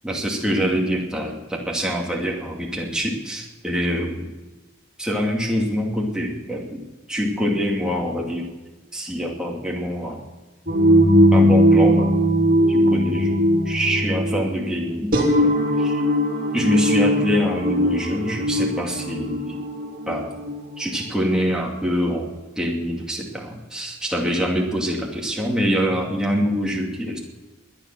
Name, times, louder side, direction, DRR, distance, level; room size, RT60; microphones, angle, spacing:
voice 1, 0.0-4.3 5.0-8.5 8.9-10.2 11.3-12.2 12.7-16.0 16.5-19.6 20.1-20.4 20.8-22.3 22.6-27.2, equal, 5° right, -1 dB, 2.4 m, -25 dB
sound 1, 10.7-20.6, equal, 45° right, 2.8 m, -19 dB
21.0 x 10.0 x 6.2 m, 1.1 s
head